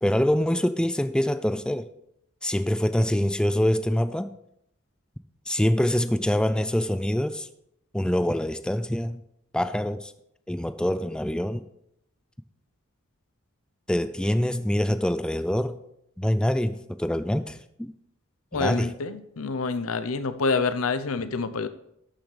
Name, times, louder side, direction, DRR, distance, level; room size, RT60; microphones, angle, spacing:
voice 1, 0.0-1.9 2.4-4.3 5.5-7.5 7.9-9.2 9.5-10.1 10.5-11.7 13.9-15.8 16.2-17.9 18.5-18.9, left 1 dB, 5° left, 0.3 m, -25 dB
voice 2, 18.5-21.7, left 4 dB, 80° left, 0.7 m, -27 dB
12.0 x 8.7 x 3.3 m
head